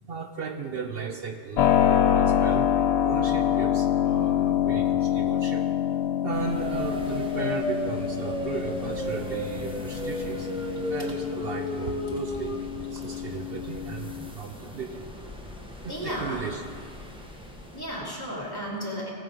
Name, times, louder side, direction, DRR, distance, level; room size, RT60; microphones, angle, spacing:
voice 1, 0.1-5.6 6.2-10.5 10.8-15.0 15.8-16.6, right 5 dB, 60° right, 5 dB, 0.9 m, -36 dB
Keyboard (musical), 1.6-14.3, left 10 dB, 75° left, 0.8 m, -26 dB
sound 1, 6.3-17.8, equal, 5° right, 1.2 m, -35 dB
voice 2, 15.9-16.5 17.7-19.1, equal, 20° left, -5 dB, 2.7 m, -34 dB
18.0 x 7.2 x 5.2 m, 2.1 s
omnidirectional pair, 1.1 m